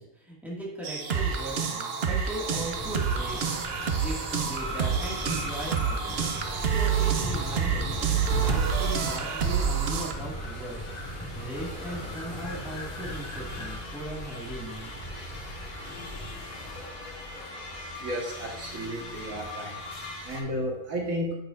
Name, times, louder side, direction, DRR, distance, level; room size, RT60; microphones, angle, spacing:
voice 1, 0.0-6.3 6.6-10.8 11.1-14.9, right 1 dB, ahead, -5 dB, 1.9 m, -38 dB
Spacetime Loop, 0.8-10.1, right 7 dB, 55° right, 0.8 m, -28 dB
sound 1, 2.5-16.9, left 1 dB, 25° left, 2.1 m, -39 dB
sound 2, 2.9-20.4, left 1 dB, 70° left, 1.7 m, -42 dB
voice 2, 18.0-19.8 20.2-21.3, equal, 70° right, -2 dB, 1.9 m, -32 dB
9.7 x 6.7 x 2.5 m, 0.92 s
omnidirectional pair, 1.5 m